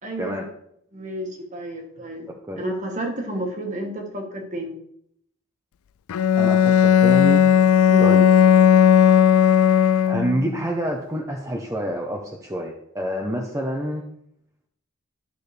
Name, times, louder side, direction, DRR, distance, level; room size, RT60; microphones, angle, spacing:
voice 1, 0.0-0.4 0.9-4.7 7.9-8.1, right 1 dB, 35° right, 1 dB, 1.6 m, -31 dB
Bowed string instrument, 6.1-10.5, left 9 dB, 85° left, 0.4 m, -15 dB
voice 2, 6.4-7.5 8.0-8.3 10.1-14.0, equal, 15° right, -1 dB, 0.8 m, -27 dB
13.0 x 6.3 x 3.4 m, 0.72 s
head